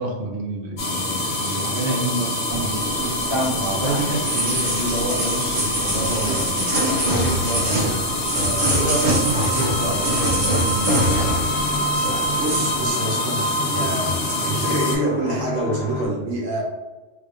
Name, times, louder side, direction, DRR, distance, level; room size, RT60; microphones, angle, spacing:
voice 1, 0.0-3.0 3.5-8.0 8.4-11.0, right 2 dB, 55° right, 0 dB, 0.8 m, -28 dB
sound 1, 0.8-14.9, left 1 dB, 80° left, 1.3 m, -25 dB
sound 2, 2.5-11.6 11.8-12.7, right 1 dB, 40° right, 1.2 m, -24 dB
sound 3, 9.6-16.1, left 4 dB, 35° left, 0.6 m, -33 dB
voice 2, 12.4-16.6, right 2 dB, 85° right, -2 dB, 1.2 m, -26 dB
3.5 x 2.4 x 3.4 m, 1.2 s
omnidirectional pair, 1.2 m